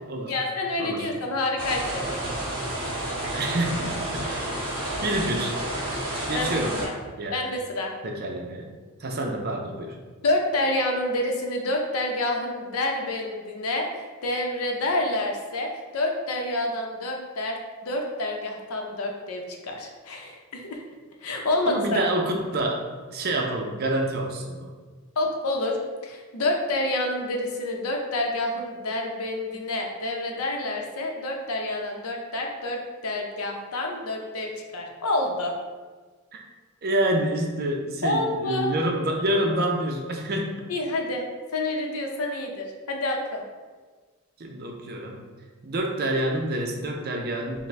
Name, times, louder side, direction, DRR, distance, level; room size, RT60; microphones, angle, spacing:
voice 1, 0.3-2.2 6.3-6.9 7.3-7.9 10.2-13.9 14.2-17.6 17.8-20.8 21.2-22.0 25.2-25.8 26.0-35.5 38.0-38.7 40.7-41.2 41.5-43.4, left 2 dB, 80° left, 1 dB, 0.6 m, -28 dB
voice 2, 0.8-1.1 3.3-4.5 5.0-5.5 6.3-6.8 7.2-7.4 8.0-8.7 9.0-10.0 21.7-24.7 36.3-36.4 36.8-40.5 44.4-45.3 45.6-47.7, right 1 dB, 45° right, 2 dB, 0.5 m, -27 dB
sound 1, 1.6-6.9, right 1 dB, 25° right, 1.2 m, -30 dB
5.8 x 2.1 x 3.2 m, 1.4 s
head